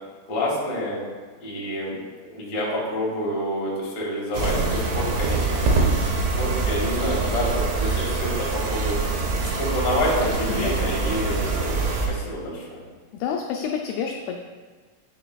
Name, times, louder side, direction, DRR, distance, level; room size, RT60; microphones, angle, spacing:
voice 1, 0.3-1.0 1.4-5.6 6.3-9.0 9.4-12.8, left 1 dB, 50° left, -5 dB, 2.3 m, -28 dB
sound 1, 4.3-12.1, right 3 dB, 75° right, 2.7 m, -24 dB
voice 2, 10.5-11.1 13.1-14.4, left 7 dB, 85° left, 1 dB, 2.4 m, -29 dB
9.4 x 6.0 x 2.3 m, 1.5 s
omnidirectional pair, 5.0 m